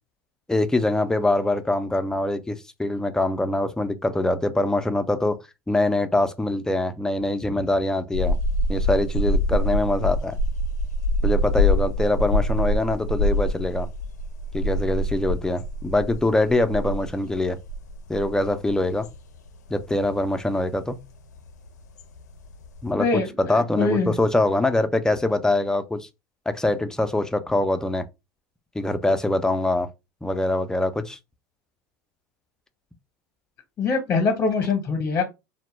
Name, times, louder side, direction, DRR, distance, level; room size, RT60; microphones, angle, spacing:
voice 1, 0.5-5.4 5.7-8.4 8.7-10.4 11.2-13.9 14.5-17.6 18.1-19.1 19.7-21.0 22.8-26.1 26.5-28.1 28.8-29.9 30.2-31.2, left 2 dB, 5° left, 0.3 m, -23 dB
sound 1, 8.1-22.9, left 1 dB, 90° left, 0.4 m, -26 dB
voice 2, 22.9-24.1 33.8-35.2, left 4 dB, 30° left, 0.7 m, -23 dB
2.1 x 2.1 x 3.1 m
hypercardioid pair, 95°, 9 cm